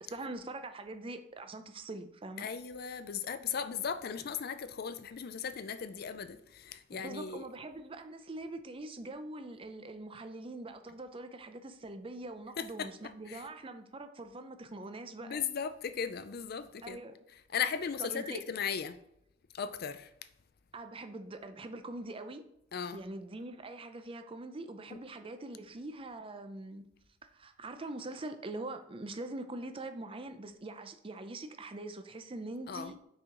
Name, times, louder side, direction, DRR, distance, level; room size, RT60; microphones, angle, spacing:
voice 1, 0.0-2.5 6.9-15.4 16.8-17.1 18.0-18.4 20.7-22.4 22.9-26.9 27.3-33.0, right 2 dB, 30° right, 0.5 m, -43 dB
voice 2, 2.4-7.4 12.6-12.9 13.3-13.4 15.2-17.0 17.5-19.0 19.5-20.1 22.7-23.0 32.7-32.9, left 7 dB, 50° left, 0.4 m, -37 dB
6.1 x 4.7 x 3.8 m
head